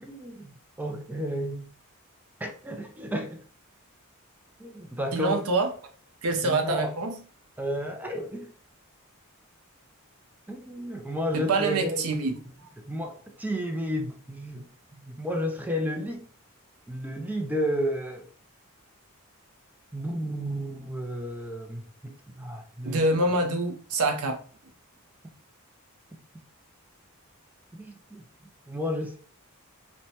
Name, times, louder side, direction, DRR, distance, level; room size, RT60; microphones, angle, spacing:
voice 1, 0.0-1.7 2.4-3.4 4.6-5.4 6.4-7.0 7.6-8.5 10.5-12.1 12.5-16.2 16.9-18.3 19.9-23.0 26.1-26.2 27.7-28.2 28.7-29.2, equal, 10° right, 0.3 m, -32 dB
voice 2, 5.1-5.7 6.2-7.1 11.3-12.4 22.8-24.4, right 2 dB, 80° right, 0.6 m, -25 dB
3.0 x 2.2 x 2.7 m
head